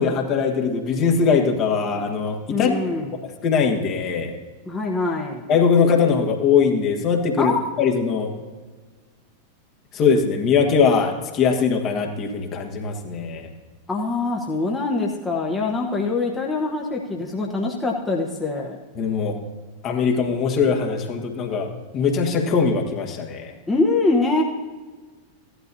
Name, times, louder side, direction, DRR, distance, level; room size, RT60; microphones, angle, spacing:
voice 1, 0.0-2.8 3.4-4.4 5.5-8.3 9.9-13.5 18.9-19.4 19.8-23.5, left 5 dB, 35° left, 2 dB, 1.5 m, -21 dB
voice 2, 2.5-3.1 4.7-5.5 7.4-7.6 13.9-18.8 23.7-24.4, left 3 dB, 10° left, -2 dB, 1.1 m, -24 dB
16.0 x 11.5 x 2.7 m, 1.4 s
figure-of-eight pair, 90°, 0 cm